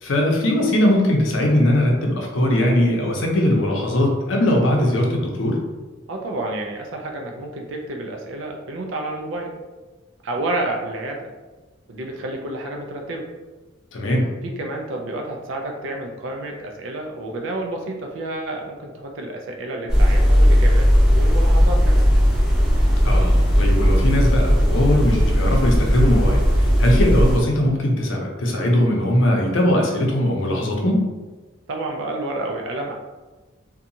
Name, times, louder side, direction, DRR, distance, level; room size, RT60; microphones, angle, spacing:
voice 1, 0.0-5.6 13.9-14.2 23.0-26.4 26.8-31.0, left 1 dB, 85° left, 0 dB, 0.6 m, -20 dB
voice 2, 6.1-9.5 10.2-11.3 11.9-13.3 14.4-22.1 31.7-32.9, right 2 dB, 75° right, 1 dB, 0.4 m, -30 dB
sound 1, 19.9-27.4, equal, 5° right, 0.6 m, -16 dB
2.7 x 2.3 x 2.6 m, 1.2 s
head